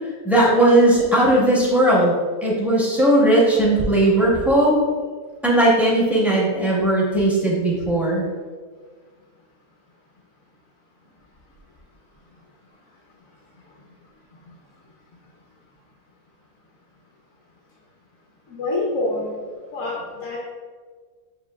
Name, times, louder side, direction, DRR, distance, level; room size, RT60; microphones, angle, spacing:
voice 1, 0.2-2.2 2.4-4.7 5.4-8.3, right 1 dB, ahead, -5 dB, 0.5 m, -17 dB
voice 2, 18.5-19.3 19.7-20.4, left 2 dB, 70° left, -4 dB, 1.1 m, -26 dB
7.3 x 2.7 x 2.2 m, 1.5 s
omnidirectional pair, 1.5 m